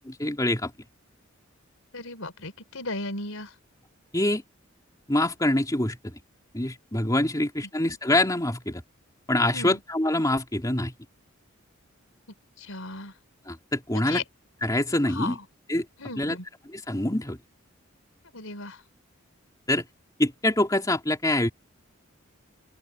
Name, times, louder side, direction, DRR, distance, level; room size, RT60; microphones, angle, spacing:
voice 1, 0.2-0.7 4.1-4.4 5.1-6.2 6.5-8.8 9.3-10.9 13.5-14.2 14.6-15.3 15.7-15.9 16.2-16.3 16.7-17.4 19.7-19.9 20.2-21.5, left 1 dB, 15° left, 3.0 m, -25 dB
voice 2, 1.9-3.5 9.5-9.8 12.6-13.1 13.9-14.2 15.1-15.4 16.0-16.4 18.3-18.8, left 2 dB, 90° left, 4.9 m, -35 dB
open air
head